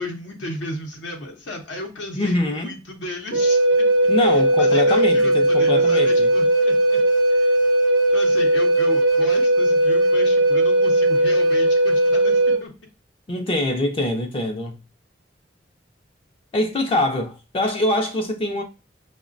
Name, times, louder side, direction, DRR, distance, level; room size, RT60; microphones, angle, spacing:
voice 1, 0.0-3.8 4.2-7.0 7.3-7.6 8.1-12.7, left 1 dB, 75° left, 0.6 m, -34 dB
voice 2, 2.2-2.8 4.1-6.3 13.3-14.8 16.5-18.6, left 1 dB, 30° left, 0.4 m, -24 dB
Wind instrument woodwind instrument, 3.3-12.6, right 1 dB, 85° right, 0.5 m, -18 dB
5.5 x 2.1 x 2.4 m
head